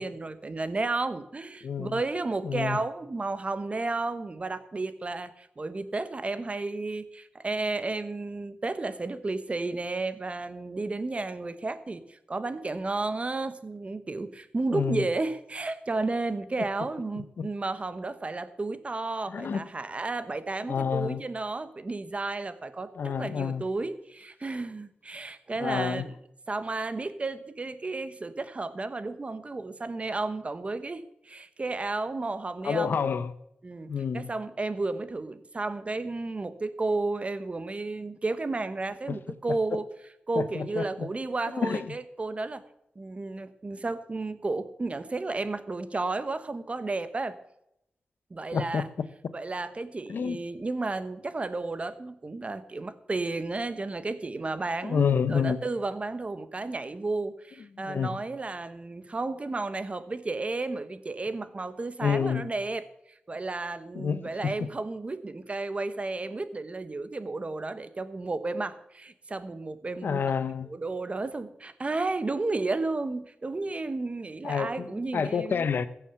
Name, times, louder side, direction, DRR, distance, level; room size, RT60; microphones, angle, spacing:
voice 1, 0.0-26.1 26.5-33.0 33.6-39.9 40.3-42.6 42.9-47.4 48.3-48.9 49.3-62.9 63.3-70.3 70.7-75.6, right 3 dB, 35° right, 1.2 m, -32 dB
voice 2, 1.6-2.0 2.4-2.8 14.7-15.1 17.2-17.5 19.3-19.6 20.7-21.2 23.0-23.6 25.6-26.0 32.6-33.3 33.9-34.3 39.7-39.8 40.4-41.1 41.6-41.8 48.5-49.1 50.1-50.4 54.8-55.6 57.8-58.1 62.0-62.5 63.9-64.7 70.0-70.7 74.4-74.9 75.1-75.9, left 6 dB, 75° left, 0.8 m, -28 dB
15.5 x 7.0 x 7.0 m
cardioid pair, 65°, 3 cm